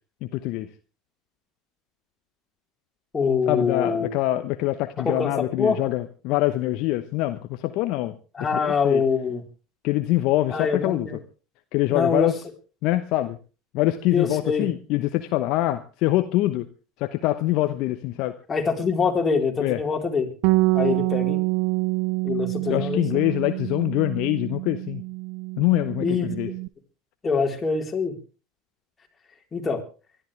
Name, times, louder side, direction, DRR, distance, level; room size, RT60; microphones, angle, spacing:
voice 1, 0.2-0.7 3.5-8.1 8.6-9.0 9.8-11.1 11.7-12.4 12.8-13.4 13.7-16.7 17.0-18.4 19.6-19.8 22.7-25.0 25.6-26.5, left 16 dB, 60° left, 9 dB, 1.0 m, -24 dB
voice 2, 3.1-4.1 5.0-5.3 5.6-5.8 8.3-9.4 10.5-11.2 11.9-12.3 14.1-14.7 18.5-20.3 20.7-21.4 22.2-23.0 26.0-26.3 27.2-28.1 29.5-29.8, left 5 dB, 25° left, 1 dB, 4.1 m, -24 dB
Bass guitar, 20.4-26.7, right 24 dB, 65° right, 0.7 m, -26 dB
24.0 x 12.5 x 3.4 m, 0.34 s
hypercardioid pair, 80°, 0 cm